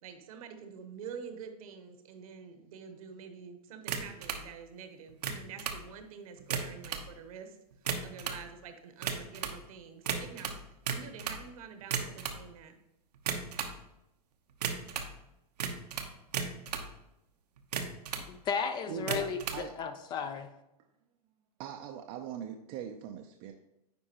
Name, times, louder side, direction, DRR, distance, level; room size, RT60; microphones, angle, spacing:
voice 1, 0.0-7.6 8.0-10.6 10.9-12.8, right 6 dB, 60° right, 7 dB, 1.1 m, -47 dB
sound 1, 3.9-4.4 5.1-5.8 6.4-7.1 7.7-8.4 9.0-9.6 10.1-11.4 11.8-12.4 13.2-13.8 14.6-15.1 15.6-16.9 17.6-18.3 19.0-19.6, right 6 dB, 80° right, 0.9 m, -35 dB
voice 2, 18.3-20.5, left 6 dB, 20° left, 9 dB, 0.4 m, -34 dB
voice 3, 18.9-19.7 21.6-23.5, right 8 dB, 35° right, 3 dB, 0.5 m, -41 dB
9.6 x 4.4 x 2.9 m, 0.89 s
hypercardioid pair, 130°, 20 cm